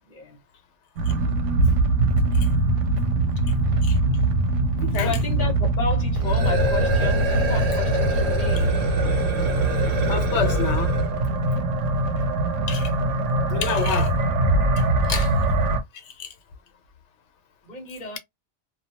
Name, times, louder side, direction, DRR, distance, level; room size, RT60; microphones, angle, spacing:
voice 1, 0.1-0.4 3.4-3.5 5.0-8.9 17.6-18.2, left 3 dB, 45° left, 0.9 m, -33 dB
sound 1, 1.0-15.8, right 2 dB, 85° right, 0.9 m, -23 dB
voice 2, 4.8-5.1 10.1-10.9 12.7-12.9 13.5-14.1 15.1-15.4 15.9-16.3, left 7 dB, 80° left, 1.0 m, -28 dB
sound 2, 6.1-11.2, right 1 dB, 65° right, 1.1 m, -24 dB
2.3 x 2.3 x 2.8 m
omnidirectional pair, 1.2 m